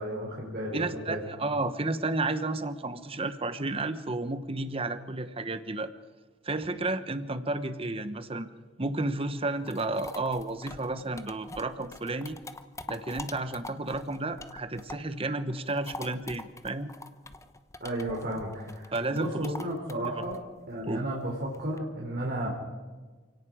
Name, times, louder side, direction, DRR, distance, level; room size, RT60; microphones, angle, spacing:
voice 1, 0.0-1.2 17.8-20.4 20.7-22.5, right 1 dB, 55° right, -2 dB, 3.7 m, -33 dB
voice 2, 0.7-5.9 6.4-8.5 8.8-12.4 12.9-16.9 18.9-19.5 20.1-20.2 20.9-21.0, right 2 dB, 30° right, 11 dB, 1.2 m, -32 dB
sound 1, 9.4-15.2 15.5-21.8, left 2 dB, 15° left, 0.9 m, -44 dB
29.0 x 17.5 x 5.1 m, 1.4 s
head